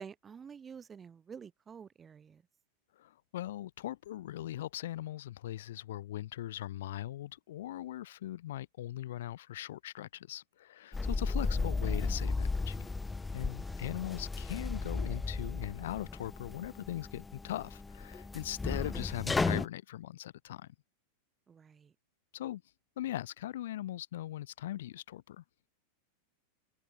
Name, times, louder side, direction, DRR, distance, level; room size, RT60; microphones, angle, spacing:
voice 1, 0.0-2.4 13.6-13.8 21.5-21.9, right 6 dB, 20° right, 4.0 m, -49 dB
voice 2, 3.0-12.9 13.3-20.7 22.3-22.6 23.0-25.4, left 13 dB, 55° left, 0.9 m, -40 dB
sound 1, 10.9-19.7, left 3 dB, 10° left, 0.5 m, -35 dB
figure-of-eight pair, 90°, 0 cm